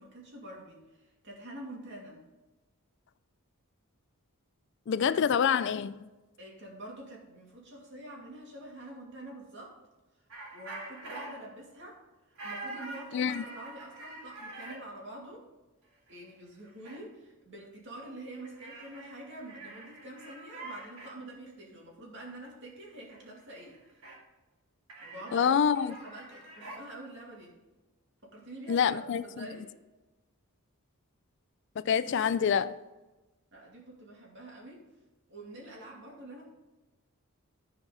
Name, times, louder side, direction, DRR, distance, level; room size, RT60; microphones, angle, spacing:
voice 1, 0.0-2.2 6.4-9.8 10.5-12.0 12.4-15.5 16.1-23.8 25.0-27.5 28.2-29.7 33.5-34.8 35.3-36.5, right 1 dB, 55° right, 2.5 m, -46 dB
voice 2, 4.9-6.0 13.1-13.4 25.3-25.9 28.7-29.2 31.8-32.8, left 7 dB, 55° left, 0.3 m, -26 dB
sound 1, 10.3-11.3 12.4-14.8 16.1-16.2 16.5-17.0 18.4-21.1 23.1-23.3 23.5-24.2 24.9-26.8, right 2 dB, 70° right, 2.7 m, -45 dB
14.0 x 4.9 x 4.0 m
head